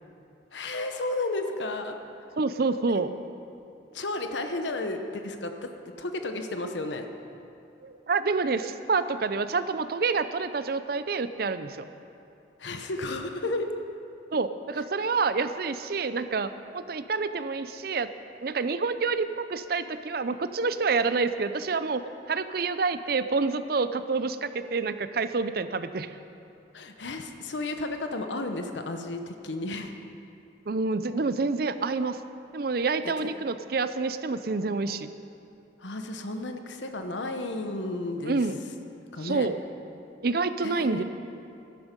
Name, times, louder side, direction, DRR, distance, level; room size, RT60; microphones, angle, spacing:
voice 1, 0.5-2.0 3.9-5.7 6.0-7.1 12.6-13.7 26.7-29.9 33.0-33.3 35.8-38.4 39.1-39.5 40.6-41.0, left 2 dB, 80° left, 6 dB, 1.0 m, -33 dB
voice 2, 2.4-3.1 7.8-11.9 14.3-18.1 18.4-26.1 30.7-32.2 32.5-35.1 38.2-38.6 39.2-39.6 40.2-41.0, right 4 dB, 55° right, 12 dB, 0.5 m, -28 dB
15.0 x 12.0 x 5.3 m, 2.7 s
head